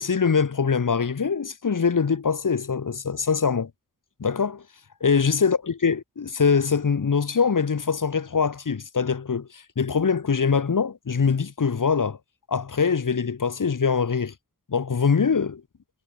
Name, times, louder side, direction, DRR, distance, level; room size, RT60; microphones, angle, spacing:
voice 1, 0.0-3.7 4.2-4.6 5.0-12.2 12.5-14.3 14.7-15.6, left 5 dB, 60° left, 3.1 m, -23 dB
wide cardioid pair, 135°, 36 cm